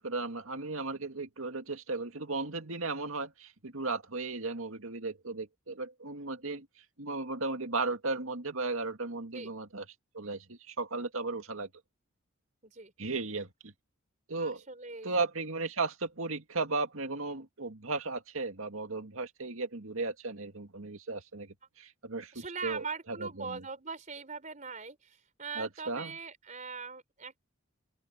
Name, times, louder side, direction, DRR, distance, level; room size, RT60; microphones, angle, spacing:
voice 1, 0.0-6.7 7.0-9.8 10.1-11.7 13.0-13.7 14.3-14.6 15.0-23.6 25.6-26.2, right 3 dB, 75° right, 2.1 m, -35 dB
voice 2, 14.4-15.2 22.3-27.4, right 5 dB, 35° right, 4.1 m, -41 dB
head